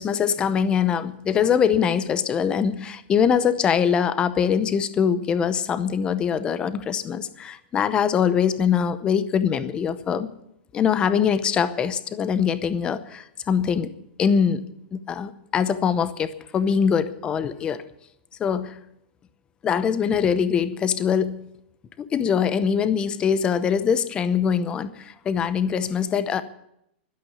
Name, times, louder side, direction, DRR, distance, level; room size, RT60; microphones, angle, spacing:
voice 1, 0.0-10.3 10.7-13.9 14.2-14.7 14.9-17.8 18.4-18.8 19.6-21.4 22.0-26.4, left 7 dB, 15° left, 14 dB, 0.7 m, -23 dB
12.5 x 12.0 x 8.4 m, 0.77 s
supercardioid pair, 165°, 6 cm